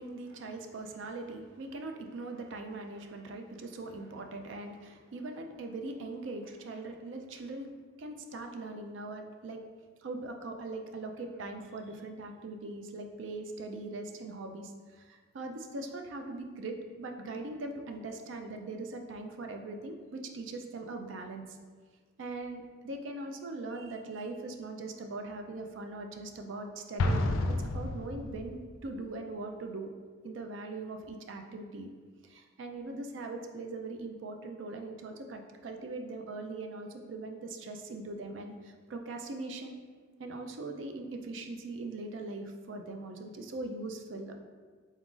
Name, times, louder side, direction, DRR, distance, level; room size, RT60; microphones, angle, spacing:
voice 1, 0.0-7.7 8.0-9.6 10.0-21.6 22.2-27.4 27.7-29.9 30.2-31.9 32.2-39.8 40.2-44.4, right 2 dB, 70° right, 4 dB, 0.4 m, -41 dB
Explosion, 27.0-28.7, left 2 dB, 90° left, 0.4 m, -30 dB
4.0 x 3.8 x 2.4 m, 1.5 s
head